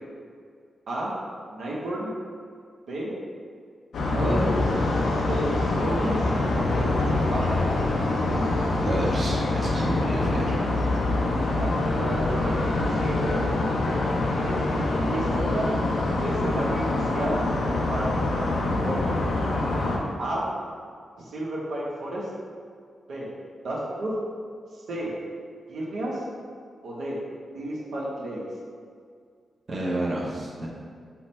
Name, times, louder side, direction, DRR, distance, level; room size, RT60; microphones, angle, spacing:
voice 1, 1.5-2.1 2.9-3.1 4.1-4.7 5.3-5.5 5.8-7.7 11.6-12.7 13.0-13.7 15.1-15.7 16.2-17.4 17.9-18.5 18.7-19.1 20.2-20.4 21.2-22.3 23.1-23.3 23.6-24.1 24.7-25.1 25.7-26.2 26.8-27.2 27.5-28.4, right 1 dB, 80° right, -5 dB, 0.9 m, -31 dB
sound 1, 3.9-20.0, left 2 dB, 80° left, 0.6 m, -25 dB
voice 2, 8.8-10.6 29.7-30.7, right 1 dB, 40° right, -5 dB, 0.8 m, -29 dB
5.7 x 2.1 x 4.3 m, 2.1 s
cardioid pair, 85°, 0 cm